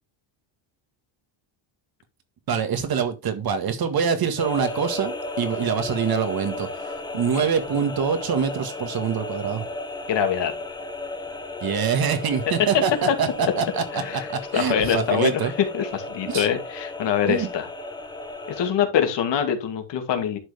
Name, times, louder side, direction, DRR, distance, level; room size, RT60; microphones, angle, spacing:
voice 1, 2.5-9.7 11.6-12.9 13.2-15.5 16.3-16.5 17.3-17.5, right 7 dB, 45° right, 1.8 m, -25 dB
sound 1, 4.4-18.7, left 2 dB, 10° left, 1.3 m, -34 dB
voice 2, 10.1-10.5 12.7-13.2 13.9-14.3 14.5-17.7 18.5-20.4, left 8 dB, 60° left, 2.4 m, -24 dB
11.5 x 6.1 x 3.4 m
cardioid pair, 140°, 49 cm